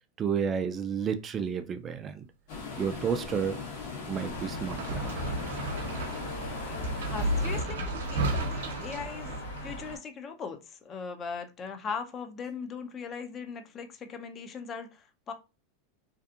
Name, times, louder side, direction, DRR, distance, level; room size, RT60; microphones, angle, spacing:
voice 1, 0.2-2.2 2.8-3.6 4.1-5.1, right 7 dB, 30° right, 0.3 m, -31 dB
sound 1, 2.5-7.6, left 4 dB, 70° left, 1.0 m, -39 dB
sound 2, 4.2-10.0, equal, 85° left, 1.3 m, -39 dB
sound 3, 4.7-9.7, right 1 dB, 80° right, 0.6 m, -33 dB
voice 2, 7.1-9.3 9.6-15.3, left 5 dB, 30° left, 0.5 m, -39 dB
2.6 x 2.3 x 2.4 m
hypercardioid pair, 110°, 0 cm